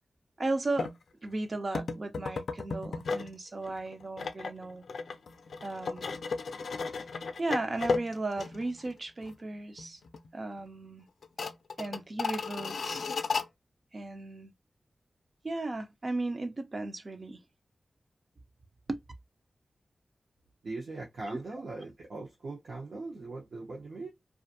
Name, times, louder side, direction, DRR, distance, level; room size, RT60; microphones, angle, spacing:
voice 1, 0.4-0.9 1.2-4.9 5.6-6.1 7.4-10.0 10.3-11.1 11.8-13.1 13.9-14.5 15.4-17.4 18.9-19.0 21.3-21.4, right 2 dB, 40° right, 0.4 m, -35 dB
sound 1, 0.8-1.0 1.7-3.3 3.6-8.9 9.2-9.3 9.8-10.3 10.6-10.7 11.2-13.5, left 4 dB, 90° left, 0.3 m, -35 dB
voice 2, 20.6-24.1, right 3 dB, 70° right, 0.7 m, -40 dB
2.5 x 2.4 x 2.6 m
wide cardioid pair, 95°, 0 cm